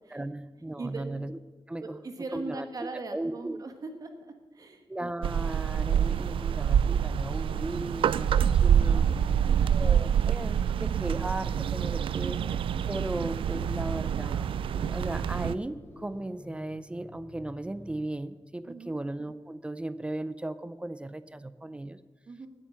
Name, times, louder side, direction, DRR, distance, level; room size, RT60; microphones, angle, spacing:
voice 1, 0.1-1.4 1.7-2.0 2.3-3.6 4.9-9.1 9.7-12.4 12.9-14.6 14.9-22.0, right 1 dB, 15° right, 14 dB, 0.5 m, -36 dB
voice 2, 1.8-5.1 8.7-9.8 18.7-18.9 22.3-22.5, right 3 dB, 45° right, 6 dB, 1.5 m, -41 dB
sound 1, 5.2-15.5, right 8 dB, 90° right, 0.4 m, -26 dB
sound 2, 6.2-18.4, left 2 dB, 25° left, 2.6 m, -49 dB
17.5 x 9.1 x 5.8 m, 1.3 s
wide cardioid pair, 160°, 9 cm